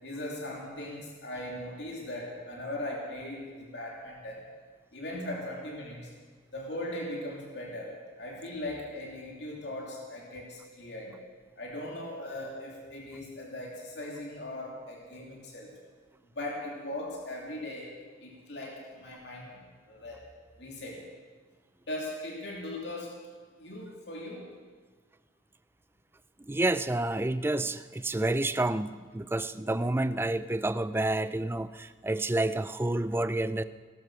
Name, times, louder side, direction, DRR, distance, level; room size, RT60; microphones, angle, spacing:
voice 1, 0.0-4.5 4.9-6.1 6.5-11.2 11.6-15.7 16.3-17.9 18.2-19.6 19.9-20.2 20.6-21.0 21.9-23.2 23.6-24.5, left 1 dB, 65° left, -2 dB, 3.0 m, -39 dB
voice 2, 26.4-33.6, right 2 dB, 10° right, 13 dB, 0.4 m, -29 dB
17.5 x 13.5 x 6.2 m, 1.5 s
head